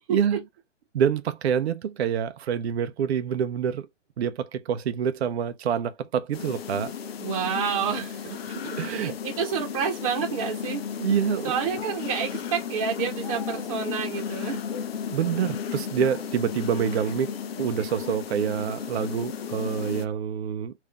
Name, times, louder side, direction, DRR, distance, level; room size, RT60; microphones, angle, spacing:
voice 1, 0.9-3.9 4.2-6.9 8.5-9.1 11.0-11.5 15.1-20.7, right 8 dB, 60° right, 0.6 m, -27 dB
sound 1, 6.3-20.1, left 7 dB, 55° left, 0.6 m, -34 dB
voice 2, 7.2-10.9 11.4-14.6, right 7 dB, 30° right, 1.1 m, -29 dB
3.7 x 2.7 x 3.4 m
hypercardioid pair, 165°, 36 cm